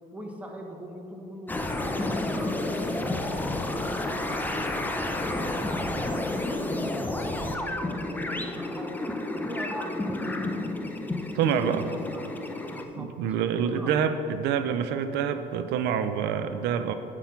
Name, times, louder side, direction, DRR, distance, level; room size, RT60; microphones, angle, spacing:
voice 1, 0.1-10.7 11.5-12.3 12.6-13.4 13.6-13.9, equal, 10° right, 1 dB, 1.3 m, -42 dB
sound 1, 1.5-12.8, left 2 dB, 10° left, 0.6 m, -30 dB
voice 2, 11.3-11.8 13.0-16.9, right 8 dB, 85° right, 10 dB, 0.5 m, -27 dB
8.1 x 5.9 x 5.8 m, 2.9 s
cardioid pair, 110°, 17 cm